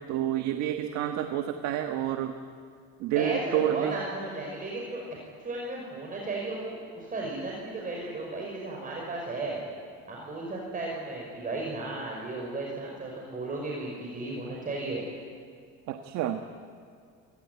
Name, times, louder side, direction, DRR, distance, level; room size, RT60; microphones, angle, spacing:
voice 1, 0.1-2.3 3.0-4.0 15.9-16.4, right 11 dB, 70° right, 6 dB, 1.5 m, -29 dB
voice 2, 3.2-5.0 5.4-9.6 10.1-15.1, right 2 dB, 30° right, -2 dB, 5.5 m, -35 dB
28.5 x 18.5 x 9.4 m, 2.2 s
cardioid pair, 115°, 29 cm